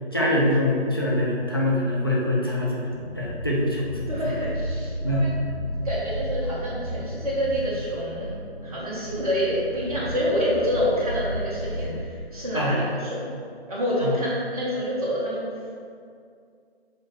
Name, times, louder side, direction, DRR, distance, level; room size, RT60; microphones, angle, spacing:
voice 1, 0.0-4.3 5.0-5.3 12.5-12.8 14.0-14.2, left 1 dB, 20° left, -5 dB, 0.6 m, -24 dB
sound 1, 2.9-12.0, equal, 20° right, 1.5 m, -33 dB
voice 2, 4.1-5.3 5.8-12.9 13.1-13.3 13.7-15.6, equal, 35° right, -7 dB, 1.1 m, -27 dB
7.2 x 3.9 x 3.5 m, 2.3 s
figure-of-eight pair, 155°, 32 cm